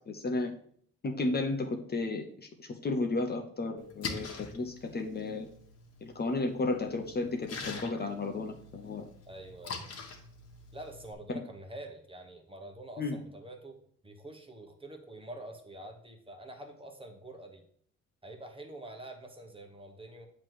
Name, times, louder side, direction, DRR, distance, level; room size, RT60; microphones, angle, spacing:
voice 1, 0.1-0.5 1.0-5.5 6.0-9.0 11.3-11.4 13.0-13.2, left 3 dB, 35° left, 4 dB, 0.8 m, -33 dB
Splash splatter, 3.8-11.1, left 4 dB, 55° left, 1.4 m, -44 dB
voice 2, 9.3-9.8 10.7-13.8 14.0-17.6 18.2-20.3, right 1 dB, 20° right, 3 dB, 1.2 m, -46 dB
7.4 x 3.2 x 6.1 m, 0.62 s
cardioid pair, 90°, 30 cm